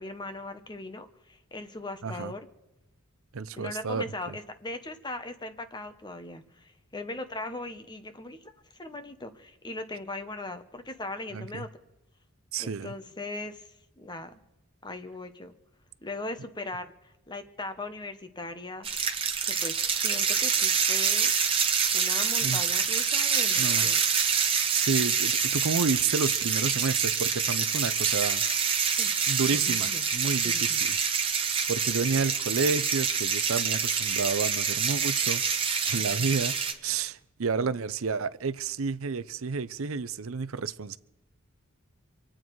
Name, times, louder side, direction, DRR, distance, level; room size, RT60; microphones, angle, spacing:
voice 1, 0.0-2.5 3.6-11.7 12.6-13.7 14.0-14.4 14.8-15.5 16.0-16.9 17.3-18.9 19.4-21.3 21.9-24.0 29.0-29.1 29.7-30.0 30.4-30.8, left 2 dB, 20° left, 1.0 m, -39 dB
voice 2, 2.0-2.3 3.3-4.4 11.3-11.7 12.5-12.9 22.4-22.6 23.6-23.9 24.7-28.4 29.3-31.0 31.3-35.4 35.9-41.0, right 5 dB, 70° right, 0.6 m, -30 dB
sound 1, 18.8-36.7, right 6 dB, 25° right, 1.2 m, -26 dB
26.5 x 9.0 x 4.7 m
head